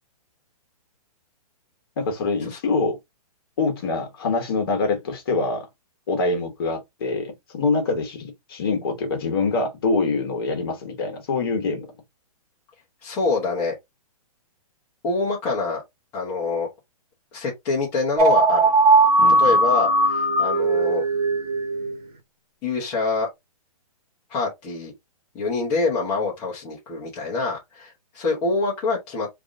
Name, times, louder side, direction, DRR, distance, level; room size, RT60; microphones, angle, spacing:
voice 1, 2.0-3.0 3.6-5.7 6.1-11.9 19.2-19.6, left 3 dB, 40° left, 1.2 m, -25 dB
voice 2, 13.0-13.7 15.0-15.8 16.1-16.7 17.3-18.6 19.4-21.0 22.6-23.3 24.3-24.9 25.3-29.3, left 3 dB, 10° left, 0.7 m, -25 dB
sound 1, 18.2-22.0, right 2 dB, 85° right, 1.2 m, -18 dB
3.4 x 2.5 x 3.6 m
hypercardioid pair, 175°, 20 cm